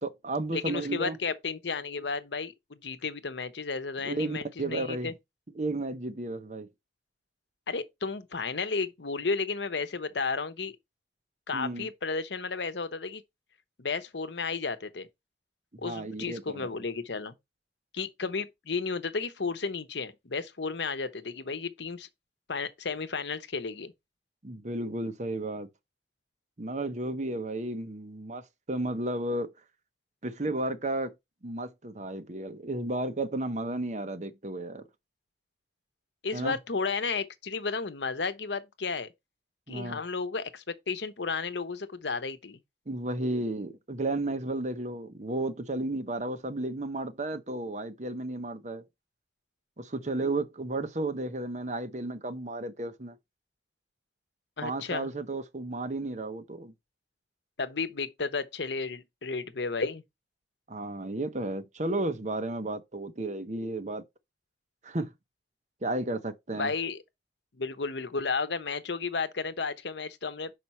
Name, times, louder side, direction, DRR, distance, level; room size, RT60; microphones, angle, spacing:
voice 1, 0.0-1.2 4.0-5.1 5.5-6.7 11.5-11.9 15.8-16.6 24.4-25.7 26.6-29.5 30.2-31.1 31.4-34.8 36.3-36.6 39.7-40.0 42.9-48.8 49.8-53.2 54.6-56.7 60.7-64.0 64.8-65.1 65.8-66.7, right 2 dB, 40° right, 0.9 m, -33 dB
voice 2, 0.5-5.1 7.7-10.8 11.5-13.2 13.8-15.1 15.8-17.3 17.9-22.1 22.5-23.9 36.2-39.1 39.7-42.6 54.6-55.1 57.6-60.0 66.5-67.0 67.5-70.5, left 4 dB, 75° left, 0.9 m, -33 dB
5.9 x 4.9 x 4.3 m
head